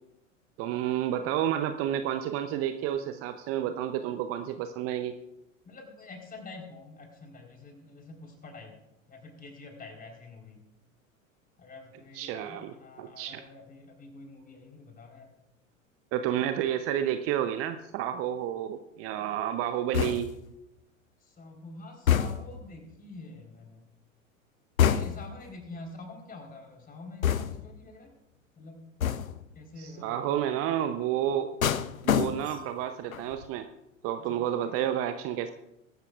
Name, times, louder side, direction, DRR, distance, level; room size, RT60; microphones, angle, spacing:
voice 1, 0.6-5.1 12.1-13.4 16.1-20.3 29.8-31.5 32.0-33.7 34.0-35.5, right 11 dB, 35° right, 9 dB, 0.7 m, -30 dB
voice 2, 5.6-8.8 9.1-10.6 11.6-15.3 21.2-23.9 24.8-28.1 28.6-28.9 29.5-30.4 34.3-34.4 34.6-34.8, left 3 dB, 20° left, 1 dB, 4.1 m, -47 dB
sound 1, 19.9-20.5 22.1-22.6 24.8-25.4 27.2-27.8 29.0-29.5 31.6-32.7 33.1-33.5, left 9 dB, 80° left, 0.7 m, -27 dB
23.5 x 12.5 x 2.5 m, 0.91 s
figure-of-eight pair, 85°, 41 cm